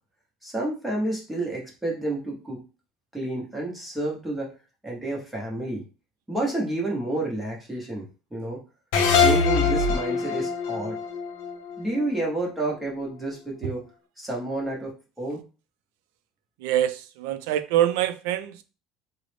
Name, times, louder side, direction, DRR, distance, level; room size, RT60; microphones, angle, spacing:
voice 1, 0.4-2.6 3.1-4.5 4.8-5.8 6.3-8.0 8.3-8.6 9.2-11.0 11.8-13.8 14.2-15.4, right 2 dB, 5° right, 0.8 m, -30 dB
sound 1, 8.9-12.2, left 5 dB, 75° left, 0.6 m, -23 dB
voice 2, 16.6-18.6, right 12 dB, 80° right, 0.4 m, -25 dB
3.8 x 2.0 x 3.2 m
cardioid pair, 170°, 0 cm